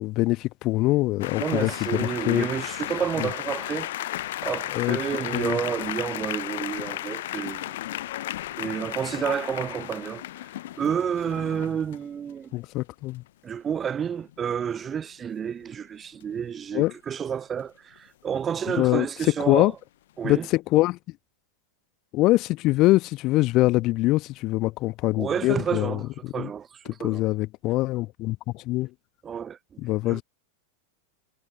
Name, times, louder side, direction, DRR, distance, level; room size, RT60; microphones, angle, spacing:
voice 1, 0.0-2.5 3.2-3.3 4.7-5.0 5.3-5.6 12.5-13.2 16.7-16.9 18.8-19.1 19.5-19.7 20.2-21.0 22.1-26.5 27.0-28.9 29.8-30.2, left 19 dB, 40° left, 1.4 m, -24 dB
sound 1, 1.2-12.0 13.9-14.0 14.3-14.6 18.6-18.8, left 15 dB, 55° left, 0.5 m, -34 dB
voice 2, 1.4-7.8 8.6-10.2 10.7-12.5 13.4-19.7 20.2-20.5 25.2-27.2 29.2-30.2, right 8 dB, 20° right, 0.7 m, -30 dB
figure-of-eight pair, 90°, 0 cm